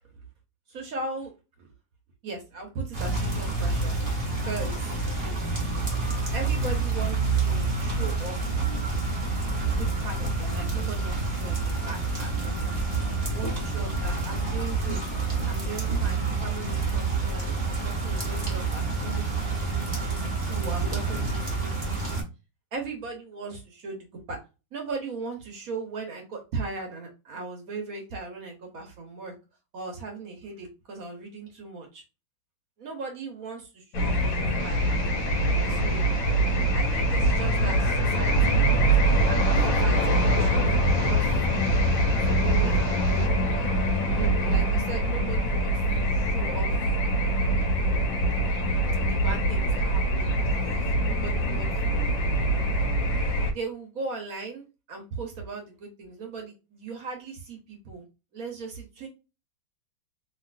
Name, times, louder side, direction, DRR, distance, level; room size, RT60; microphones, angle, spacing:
voice 1, 0.7-1.3 1.6-1.7 2.2-3.9 4.4-5.1 6.3-8.7 9.6-12.7 13.3-15.0 15.5-19.4 19.7-22.0 22.7-24.4 24.7-29.3 29.7-32.0 32.8-35.0 35.3-36.0 36.7-41.7 42.2-43.2 44.1-46.9 49.0-52.1 53.5-58.0 58.3-59.1, right 4 dB, 55° right, 2 dB, 1.1 m, -38 dB
sound 1, 2.9-22.2, right 3 dB, 25° right, 0.7 m, -28 dB
sound 2, 33.9-53.5, right 1 dB, 75° left, 1.4 m, -24 dB
Engine, 34.6-43.3, right 7 dB, 85° right, 1.4 m, -41 dB
3.1 x 2.9 x 2.4 m, 0.29 s
omnidirectional pair, 2.1 m